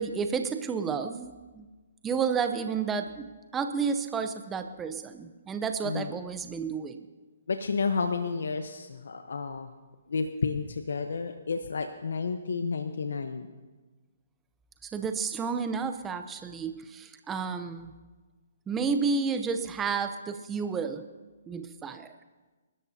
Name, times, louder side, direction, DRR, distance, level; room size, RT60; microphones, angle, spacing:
voice 1, 0.0-1.7 2.0-7.1 14.8-17.9 18.7-21.0 21.5-22.1, right 5 dB, 15° right, 7 dB, 0.7 m, -31 dB
voice 2, 7.5-9.7 10.1-13.5, left 4 dB, 75° left, 7 dB, 0.9 m, -31 dB
28.5 x 13.0 x 2.8 m, 1.3 s
hypercardioid pair, 145°, 0 cm